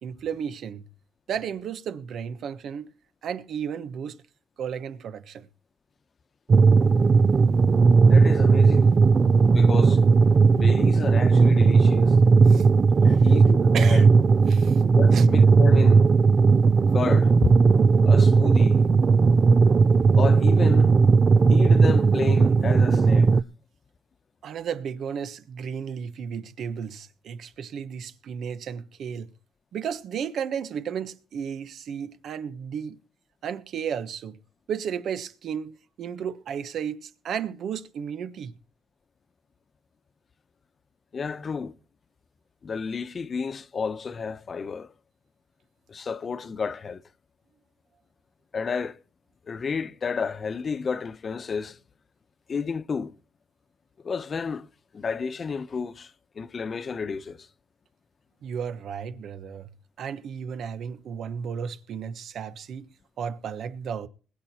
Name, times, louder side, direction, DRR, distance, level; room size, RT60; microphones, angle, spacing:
voice 1, 0.0-0.9 1.3-2.9 3.2-4.2 4.6-5.5 12.4-12.7 13.0-13.3 13.7-14.1 14.5-14.8 15.1-15.3 24.4-29.3 29.7-33.0 33.4-34.4 34.7-38.5 58.4-59.7 60.0-62.9 63.2-64.1, right 7 dB, 65° right, 1.2 m, -33 dB
sound 1, 6.5-23.4, right 4 dB, 40° right, 0.6 m, -17 dB
voice 2, 8.1-8.9 9.5-10.0 10.5-12.2 13.0-14.0 14.9-16.1 16.9-17.6 18.0-18.8 20.2-20.9 21.5-23.3 41.1-41.7 42.6-44.9 45.9-47.0 48.5-49.0 49.5-51.8 52.5-53.1 54.0-54.7 54.9-56.1 56.4-57.5, left 5 dB, 40° left, 1.0 m, -31 dB
21.0 x 8.5 x 4.4 m
cardioid pair, 90°, 0 cm